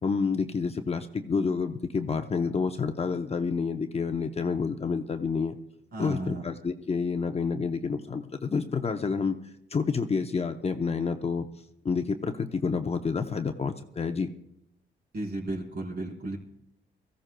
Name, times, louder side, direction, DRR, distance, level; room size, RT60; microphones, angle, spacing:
voice 1, 0.0-5.6 6.0-9.3 9.7-11.5 11.8-14.3, left 5 dB, 30° left, 7 dB, 0.8 m, -29 dB
voice 2, 5.9-6.4 15.1-16.4, right 2 dB, 50° right, -1 dB, 4.4 m, -34 dB
22.5 x 15.0 x 2.3 m, 0.77 s
cardioid pair, 90°, 20 cm